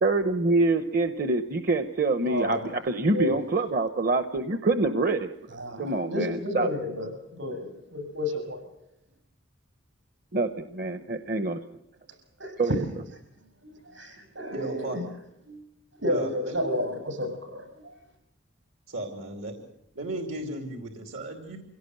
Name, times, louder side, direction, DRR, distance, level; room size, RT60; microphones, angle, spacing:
voice 1, 0.0-5.3 5.8-6.7 10.3-11.6 12.6-12.8, right 3 dB, 45° right, 10 dB, 0.8 m, -25 dB
voice 2, 2.2-2.6 3.0-3.4 5.5-8.6 12.4-12.9 13.6-15.1 15.5-15.6 16.0-17.3, left 1 dB, 70° right, 5 dB, 7.4 m, -31 dB
voice 3, 14.5-15.0 16.0-17.0 18.9-19.6 19.9-21.6, right 1 dB, 90° right, 4 dB, 2.7 m, -35 dB
25.0 x 17.0 x 7.9 m, 0.84 s
head